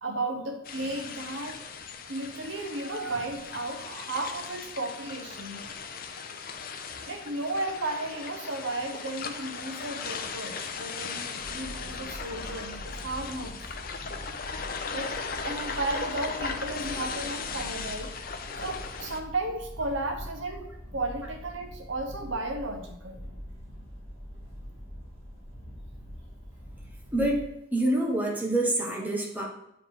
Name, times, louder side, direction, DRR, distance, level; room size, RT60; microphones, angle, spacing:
voice 1, 0.0-1.6 2.1-5.7 7.1-13.6 14.9-15.1 15.4-18.1 18.5-23.2, right 2 dB, 70° right, 4 dB, 1.0 m, -34 dB
sound 1, 0.7-19.2, left 5 dB, 45° left, 0.6 m, -38 dB
sound 2, 11.4-27.4, equal, 25° right, 2.6 m, -44 dB
voice 2, 27.1-27.4 27.7-29.4, right 1 dB, 10° right, -2 dB, 1.2 m, -26 dB
8.9 x 4.9 x 3.7 m, 0.81 s
head